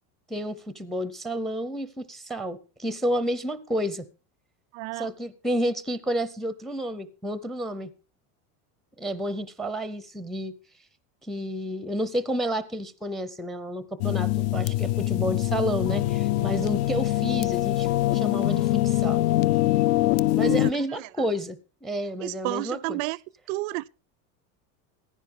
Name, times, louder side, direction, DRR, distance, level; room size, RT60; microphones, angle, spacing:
voice 1, 0.3-4.0 5.0-7.9 9.0-10.6 11.3-19.2 20.3-23.0, equal, ahead, 0.5 m, -30 dB
voice 2, 4.7-5.1 20.4-21.1 22.2-23.2 23.5-23.9, right 21 dB, 70° right, 0.5 m, -31 dB
sound 1, 14.0-20.7, left 16 dB, 70° left, 0.6 m, -24 dB
15.0 x 10.5 x 3.7 m
supercardioid pair, 140°, 42 cm